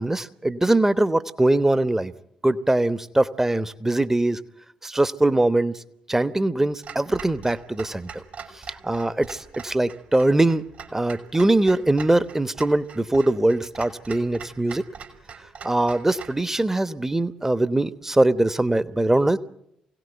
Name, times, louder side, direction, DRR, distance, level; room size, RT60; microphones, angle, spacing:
voice 1, 0.0-2.1 2.4-4.4 4.8-5.8 6.1-8.2 8.5-14.9 15.6-19.4, right 2 dB, 15° right, 15 dB, 1.0 m, -22 dB
Clock, 6.8-16.4, right 6 dB, 50° right, 2.9 m, -42 dB
25.0 x 17.5 x 9.1 m, 0.82 s
figure-of-eight pair, 40°, 3 cm